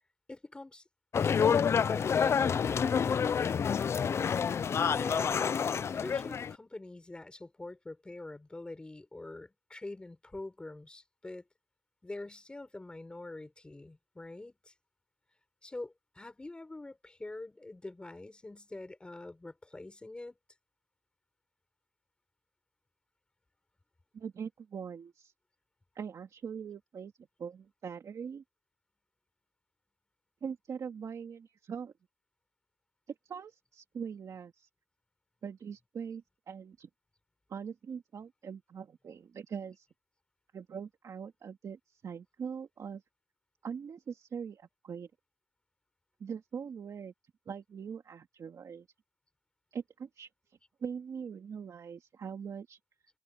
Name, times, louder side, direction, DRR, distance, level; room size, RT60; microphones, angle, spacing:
voice 1, 0.3-0.8 1.2-3.5 4.9-11.4 12.0-14.7 15.6-20.4, left 2 dB, 10° left, 4.2 m, -45 dB
sound 1, 1.1-6.5, left 7 dB, 30° left, 0.4 m, -28 dB
voice 2, 24.1-25.3 25.9-27.1 27.4-28.4 30.4-31.9 33.1-34.7 35.4-36.9 37.5-39.9 40.5-43.0 43.6-45.1 46.2-47.1 47.5-48.9 49.7-52.8, right 7 dB, 35° right, 2.3 m, -42 dB
open air
cardioid pair, 175°, 9 cm